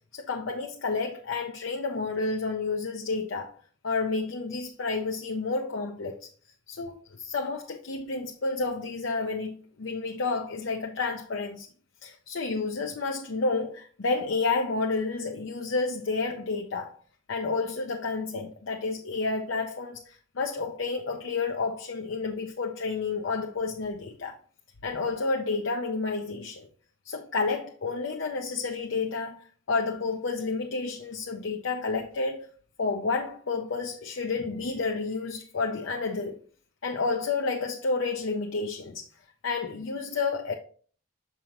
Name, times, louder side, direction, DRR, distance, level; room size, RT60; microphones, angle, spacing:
voice 1, 0.1-3.5 3.8-6.2 6.7-11.7 12.0-17.0 17.3-24.4 24.8-26.7 27.1-32.5 32.8-36.4 36.8-39.1 39.4-40.5, left 4 dB, 85° left, 0.7 m, -30 dB
6.2 x 5.5 x 3.0 m
head